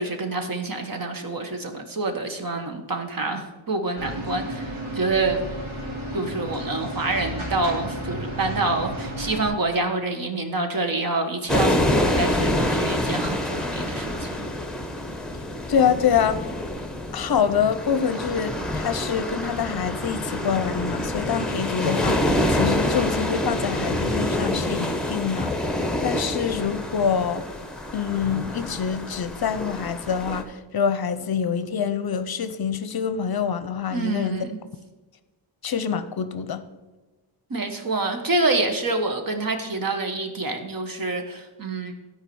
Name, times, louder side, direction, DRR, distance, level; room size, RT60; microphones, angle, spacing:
voice 1, 0.0-5.4 6.1-14.5 33.9-34.6 37.5-41.9, right 2 dB, 45° right, 1.4 m, -27 dB
sound 1, 4.0-9.5, equal, 85° right, 2.7 m, -32 dB
sound 2, 11.5-30.4, left 1 dB, ahead, 1.1 m, -27 dB
voice 2, 15.7-16.5 17.1-25.6 26.0-27.5 27.9-34.5 35.6-36.7, left 7 dB, 50° left, 0.6 m, -25 dB
12.5 x 4.9 x 6.9 m
wide cardioid pair, 135°, 46 cm